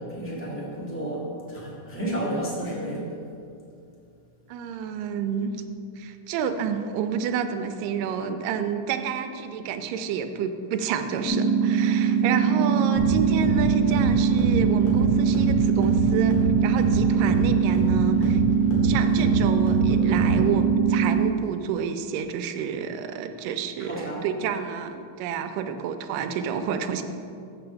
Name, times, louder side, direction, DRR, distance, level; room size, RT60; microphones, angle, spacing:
voice 1, 0.0-3.0 12.4-12.6 23.8-24.2, right 1 dB, 15° left, -6 dB, 0.4 m, -32 dB
voice 2, 4.5-5.6 6.0-18.4 18.8-27.0, right 6 dB, 90° right, 8 dB, 2.3 m, -29 dB
sound 1, 11.2-21.3, right 7 dB, 75° left, 0.9 m, -22 dB
sound 2, 12.9-20.6, equal, 50° left, 2.3 m, -28 dB
7.0 x 5.8 x 6.8 m, 2.5 s
omnidirectional pair, 3.8 m